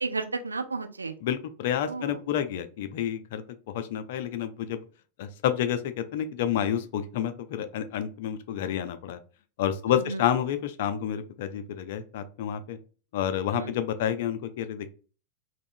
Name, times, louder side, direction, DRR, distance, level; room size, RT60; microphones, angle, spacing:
voice 1, 0.0-1.1 1.8-2.2 9.9-10.2 13.5-13.7, right 3 dB, 80° right, 7 dB, 0.4 m, -33 dB
voice 2, 1.2-4.8 5.2-9.2 9.6-12.8 13.1-14.9, left 10 dB, 55° left, 11 dB, 0.3 m, -29 dB
3.6 x 2.0 x 2.5 m, 0.38 s
figure-of-eight pair, 90°, 0 cm